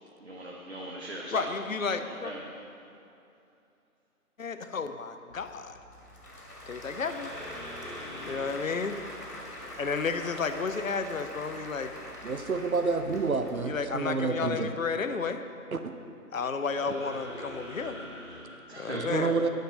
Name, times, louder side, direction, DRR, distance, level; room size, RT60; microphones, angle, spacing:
voice 1, 0.2-1.5 2.0-2.4 18.7-19.4, right 1 dB, 45° right, -2 dB, 1.0 m, -38 dB
sound 1, 0.6-1.3 7.0-11.1 16.7-18.5, equal, 10° left, 1.3 m, -45 dB
voice 2, 1.3-2.3 4.4-5.8 6.7-7.3 8.3-9.0 9.8-12.0 13.6-15.4 16.3-18.0 18.7-19.3, left 5 dB, 60° left, 9 dB, 0.6 m, -32 dB
Applause / Crowd, 5.3-14.1, left 1 dB, 80° left, 2.5 m, -44 dB
voice 3, 12.2-14.7 15.7-15.9 18.9-19.5, right 4 dB, 65° right, 8 dB, 0.7 m, -29 dB
10.5 x 6.8 x 6.4 m, 2.6 s
figure-of-eight pair, 160°, 46 cm